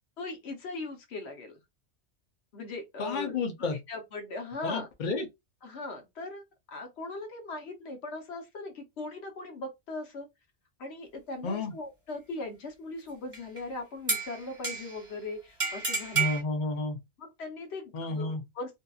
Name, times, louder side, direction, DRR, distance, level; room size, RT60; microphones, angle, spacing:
voice 1, 0.2-1.6 2.5-3.4 3.9-4.9 5.6-6.4 6.7-10.3 10.8-16.2 17.2-18.8, left 2 dB, 65° left, 1.0 m, -39 dB
voice 2, 3.0-3.8 4.6-5.3 11.4-11.7 16.1-17.0 17.9-18.4, left 3 dB, 50° left, 0.7 m, -31 dB
sound 1, 13.3-13.6 14.1-15.1 15.6-16.4, right 5 dB, 30° right, 1.1 m, -31 dB
2.7 x 2.6 x 2.3 m
omnidirectional pair, 1.2 m